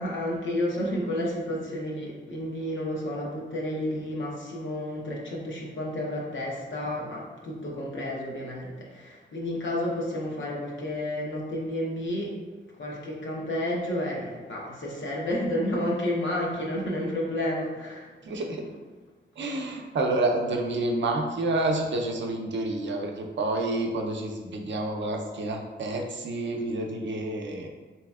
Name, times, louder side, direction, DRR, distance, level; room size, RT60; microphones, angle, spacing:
voice 1, 0.0-12.3 12.8-18.1, left 1 dB, 90° left, -3 dB, 0.8 m, -31 dB
voice 2, 18.2-18.6 19.4-27.7, right 2 dB, 75° right, 2 dB, 0.5 m, -29 dB
4.1 x 2.8 x 2.3 m, 1.3 s
wide cardioid pair, 140°, 19 cm